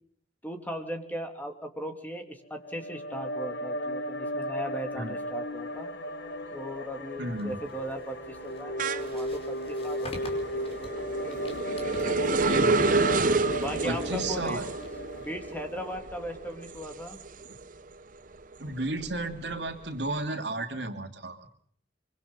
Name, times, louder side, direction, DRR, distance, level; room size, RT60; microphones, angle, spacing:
voice 1, 0.4-6.0 6.5-10.5 13.6-14.6 15.2-17.2, equal, 10° left, 5 dB, 3.0 m, -38 dB
sound 1, 2.5-15.9, equal, 70° left, 1.5 m, -35 dB
sound 2, 5.9-6.3 6.7-17.9 18.3-20.0, right 3 dB, 50° right, 1.0 m, -30 dB
voice 2, 7.2-7.6 12.5-13.2 13.8-14.6 18.6-21.4, right 2 dB, 80° right, 5 dB, 3.0 m, -33 dB
sound 3, 7.3-15.9, left 1 dB, 35° left, 4.9 m, -48 dB
25.0 x 24.5 x 5.6 m, 0.63 s
head